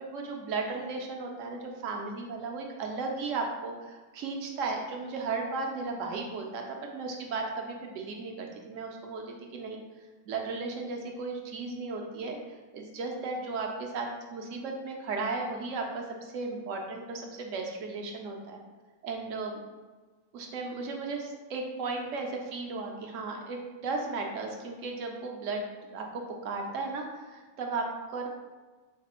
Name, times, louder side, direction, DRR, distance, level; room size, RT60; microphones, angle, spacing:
voice 1, 0.1-6.6 6.9-9.2 9.5-9.8 10.3-12.4 12.7-18.6 19.0-19.6 20.3-28.3, right 3 dB, 70° right, 1 dB, 0.9 m, -35 dB
3.8 x 3.3 x 2.9 m, 1.3 s
omnidirectional pair, 1.5 m